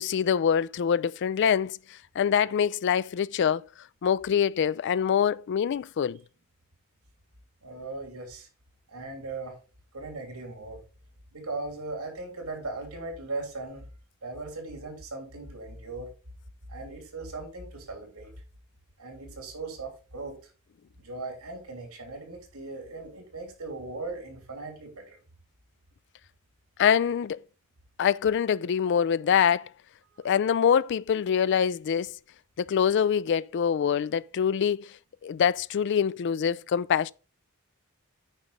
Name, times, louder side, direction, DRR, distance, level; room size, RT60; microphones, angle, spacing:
voice 1, 0.0-1.8 2.2-3.6 4.0-6.2 26.8-27.4 28.0-29.7 30.2-32.1 32.6-34.9 35.2-37.1, left 8 dB, 55° left, 0.3 m, -24 dB
voice 2, 7.6-8.5 8.9-9.5 9.9-10.8 11.3-13.9 14.2-16.1 16.7-18.3 19.0-20.5 21.0-25.2 30.2-30.3, right 3 dB, 85° right, 3.1 m, -38 dB
9.0 x 5.0 x 4.1 m
head